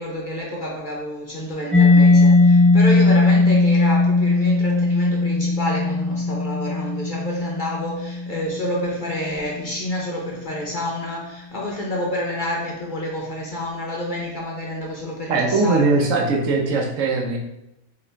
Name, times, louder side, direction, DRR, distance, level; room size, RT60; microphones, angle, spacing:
voice 1, 0.0-16.1, left 1 dB, 45° left, -3 dB, 0.8 m, -28 dB
Mallet percussion, 1.7-9.2, left 3 dB, ahead, 0.3 m, -18 dB
voice 2, 15.3-17.4, right 3 dB, 70° right, 1 dB, 1.0 m, -20 dB
4.9 x 2.9 x 3.3 m, 0.86 s
omnidirectional pair, 1.5 m